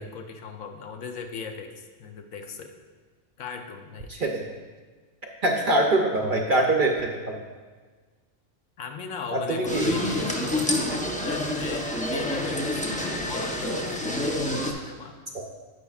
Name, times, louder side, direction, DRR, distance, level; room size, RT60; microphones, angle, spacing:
voice 1, 0.0-2.7 3.4-4.1 8.8-15.2, left 5 dB, 75° left, 5 dB, 1.1 m, -38 dB
voice 2, 4.1-4.5 5.4-7.4 9.3-9.9, right 2 dB, 50° right, 2 dB, 0.7 m, -24 dB
sound 1, 9.6-14.7, left 1 dB, 10° left, 0.4 m, -28 dB
10.0 x 8.2 x 2.4 m, 1.4 s
omnidirectional pair, 1.4 m